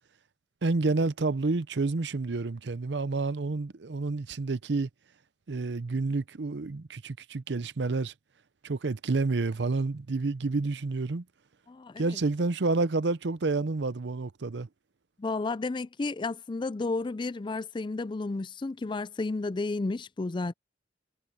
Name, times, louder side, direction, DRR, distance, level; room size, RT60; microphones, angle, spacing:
voice 1, 0.6-4.9 5.5-8.1 8.6-11.2 12.0-14.7, right 3 dB, 80° right, 0.7 m, -29 dB
voice 2, 11.7-12.0 15.2-20.5, left 3 dB, 25° left, 0.4 m, -32 dB
head